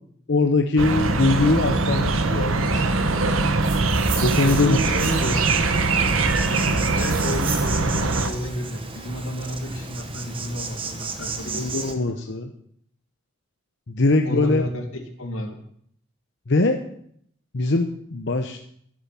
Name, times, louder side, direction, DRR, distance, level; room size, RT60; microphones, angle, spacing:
voice 1, 0.3-2.8 3.1-3.5 4.2-4.8 11.5-12.5 13.9-14.6 16.5-16.8 17.5-18.6, left 3 dB, 60° left, 5 dB, 0.9 m, -22 dB
sound 1, 0.8-8.3, right 3 dB, 80° right, 1.2 m, -22 dB
sound 2, 3.4-5.5 6.1-7.8, right 6 dB, 65° right, 3.5 m, -36 dB
Insect, 3.9-11.9, right 4 dB, 25° right, 1.3 m, -34 dB
voice 2, 4.4-5.6 6.5-11.7 14.3-15.6, left 1 dB, 85° left, 5 dB, 2.3 m, -31 dB
12.0 x 10.0 x 5.8 m, 0.67 s
head